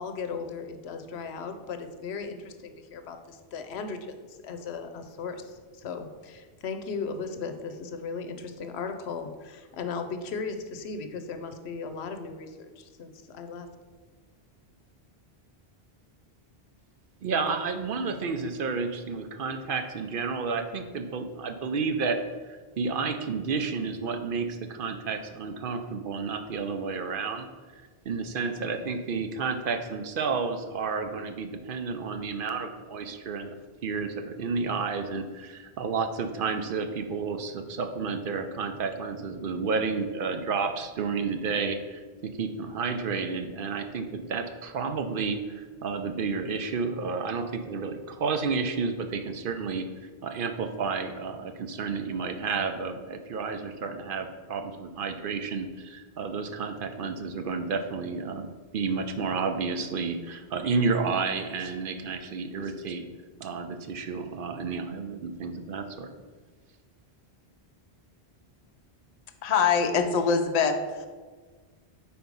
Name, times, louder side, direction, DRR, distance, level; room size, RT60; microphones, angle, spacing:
voice 1, 0.0-13.7, left 5 dB, 85° left, 8 dB, 0.9 m, -37 dB
voice 2, 17.2-22.2 22.5-27.5 28.1-33.5 33.8-49.9 50.2-63.1 63.4-66.1, right 4 dB, 60° right, 6 dB, 0.7 m, -31 dB
voice 3, 69.4-71.1, left 5 dB, 50° left, 6 dB, 0.6 m, -24 dB
4.7 x 4.3 x 5.3 m, 1.4 s
omnidirectional pair, 1.1 m